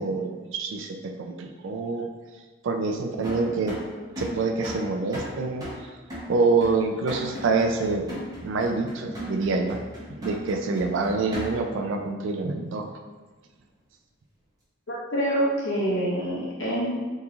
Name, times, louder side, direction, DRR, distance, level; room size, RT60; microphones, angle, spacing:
voice 1, 0.0-2.1 2.6-3.8 4.2-5.6 6.3-9.8 10.2-12.9, right 3 dB, 65° right, 4 dB, 0.3 m, -26 dB
sound 1, 3.2-11.8, equal, 20° right, 0.7 m, -37 dB
voice 2, 14.9-16.9, equal, 60° left, -5 dB, 1.0 m, -26 dB
3.6 x 2.9 x 2.4 m, 1.3 s
head